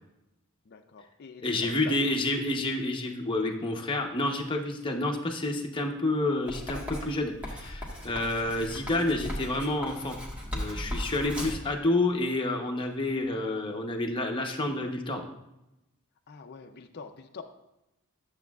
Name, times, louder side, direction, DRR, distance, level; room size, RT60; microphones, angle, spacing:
voice 1, 0.7-2.1 16.3-17.4, left 4 dB, 45° left, 5 dB, 0.5 m, -45 dB
voice 2, 1.4-10.2 10.5-15.3, left 2 dB, 20° left, 1 dB, 0.8 m, -29 dB
Writing, 6.5-11.7, equal, 5° right, 1.4 m, -37 dB
11.5 x 7.1 x 2.3 m, 0.91 s
head